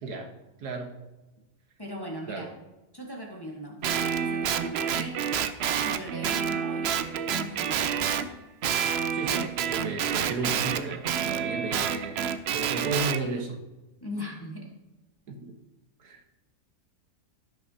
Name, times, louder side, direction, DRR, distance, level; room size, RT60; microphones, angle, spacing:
voice 1, 0.6-0.9 2.3-2.5 9.1-12.2 12.5-13.6 15.3-15.5 16.0-16.2, right 3 dB, 85° right, 3 dB, 1.7 m, -33 dB
voice 2, 1.8-2.6 2.9-5.2 5.8-8.3 14.0-14.7, equal, 15° left, -2 dB, 1.4 m, -39 dB
Guitar, 3.8-8.3 8.6-13.2, right 8 dB, 70° right, 0.6 m, -28 dB
16.0 x 6.6 x 2.7 m, 1.1 s
omnidirectional pair, 1.6 m